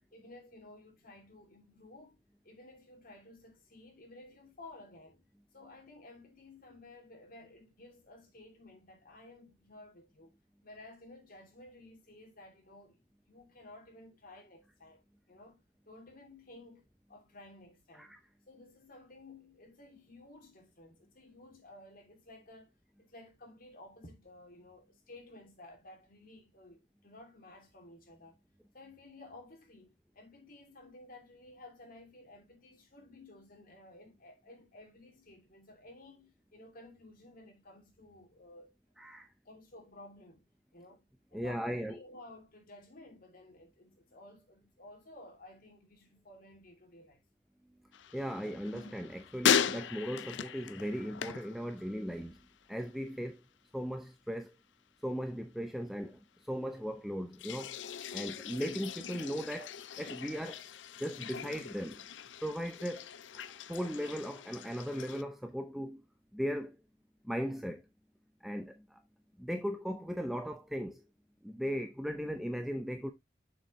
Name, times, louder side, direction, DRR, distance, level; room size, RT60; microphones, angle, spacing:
voice 1, 0.0-2.2 2.4-5.2 5.5-10.4 10.6-15.6 15.9-18.1 18.5-22.7 23.0-28.4 28.7-38.7 39.4-41.0 41.3-47.2, left 2 dB, 50° left, 2.8 m, -54 dB
voice 2, 39.0-39.3 41.3-42.0 48.1-52.4 52.7-53.4 53.7-54.5 55.0-56.2 56.5-57.8 58.1-60.6 61.0-62.0 62.4-63.1 63.7-66.0 66.3-66.8 67.2-67.8 68.4-69.0 69.4-71.0 71.4-73.1, equal, ahead, 0.6 m, -37 dB
sound 1, 47.9-52.4 52.6-53.2 57.3-65.2, left 8 dB, 75° left, 0.5 m, -37 dB
6.9 x 6.4 x 3.1 m
head